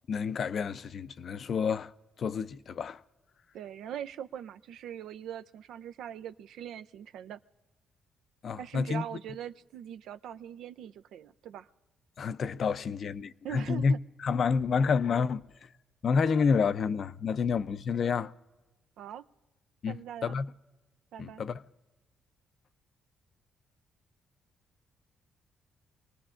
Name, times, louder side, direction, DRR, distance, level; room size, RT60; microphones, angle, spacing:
voice 1, 0.1-1.9 2.2-3.0 8.4-9.0 12.2-15.7 16.0-18.3 19.8-20.5 21.2-21.6, left 5 dB, 55° left, 0.5 m, -29 dB
voice 2, 3.5-7.4 8.6-11.7 13.4-14.0 19.0-19.2 19.9-20.4 21.1-21.4, right 10 dB, 80° right, 0.4 m, -42 dB
26.5 x 19.0 x 2.5 m
cardioid pair, 90°, 0 cm